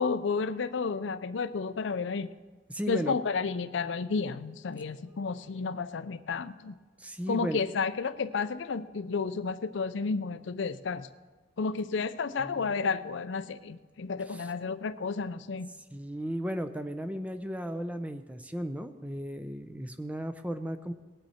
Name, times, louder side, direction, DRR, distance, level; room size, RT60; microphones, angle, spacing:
voice 1, 0.0-2.3 2.9-6.7 7.3-11.1 11.6-15.7, left 4 dB, 70° left, 13 dB, 0.5 m, -31 dB
voice 2, 2.7-3.2 7.0-7.6 12.4-12.8 14.3-14.5 15.9-20.9, equal, 5° right, 9 dB, 0.5 m, -35 dB
19.5 x 9.0 x 4.3 m, 1.3 s
head